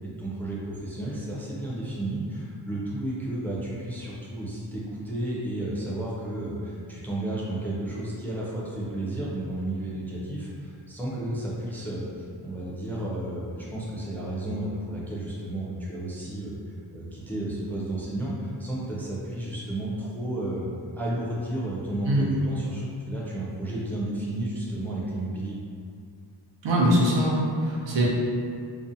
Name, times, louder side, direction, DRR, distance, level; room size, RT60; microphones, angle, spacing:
voice 1, 0.0-16.5 16.9-20.7 21.0-25.6, right 1 dB, 5° left, -6 dB, 0.4 m, -32 dB
voice 2, 26.6-28.1, equal, 70° right, -4 dB, 0.6 m, -22 dB
2.5 x 2.1 x 2.6 m, 2.3 s
wide cardioid pair, 85°, 46 cm